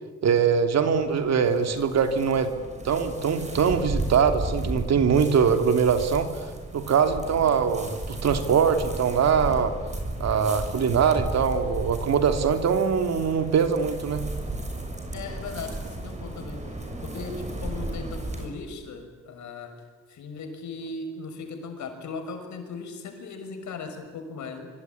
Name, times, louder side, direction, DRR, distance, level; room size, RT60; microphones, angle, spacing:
voice 1, 0.2-2.5 2.8-6.3 6.7-9.7 10.2-14.2, right 6 dB, 60° right, 7 dB, 3.0 m, -22 dB
sound 1, 0.7-18.5, right 2 dB, 25° right, 6.8 m, -34 dB
voice 2, 15.1-16.7 17.0-19.7 20.1-24.7, left 4 dB, 70° left, 5 dB, 6.4 m, -38 dB
25.0 x 24.5 x 9.7 m, 1.4 s
cardioid pair, 90°, 30 cm